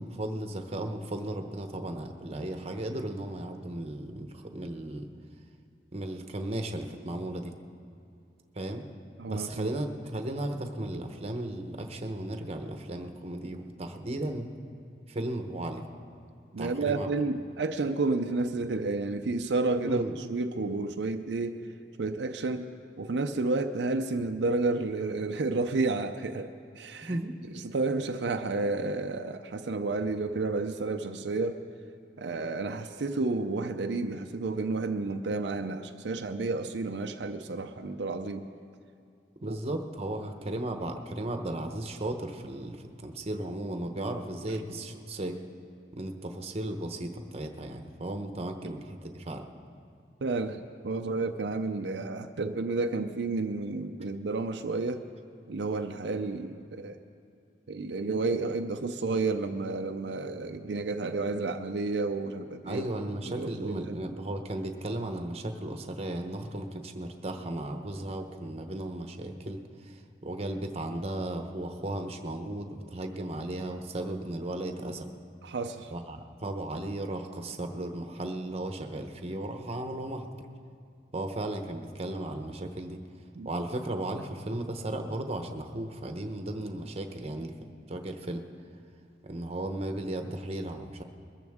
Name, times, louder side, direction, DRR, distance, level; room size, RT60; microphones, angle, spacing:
voice 1, 0.0-5.1 5.9-7.5 8.5-8.8 9.3-14.5 15.1-15.8 16.6-17.1 19.8-20.2 27.0-27.3 39.4-45.4 45.9-49.4 62.6-75.1 75.9-80.4 81.1-83.0 83.4-87.5 87.9-88.4 89.2-91.0, right 1 dB, 35° right, 5 dB, 0.9 m, -35 dB
voice 2, 9.2-9.7 16.5-20.0 20.3-21.6 22.0-22.7 23.0-27.2 27.6-31.6 32.2-38.5 39.4-39.6 48.6-48.7 50.2-55.1 55.5-57.0 57.7-62.8 63.4-64.0 75.4-75.9 83.4-83.5, right 3 dB, 80° right, 6 dB, 0.6 m, -31 dB
21.5 x 14.0 x 3.6 m, 2.5 s
head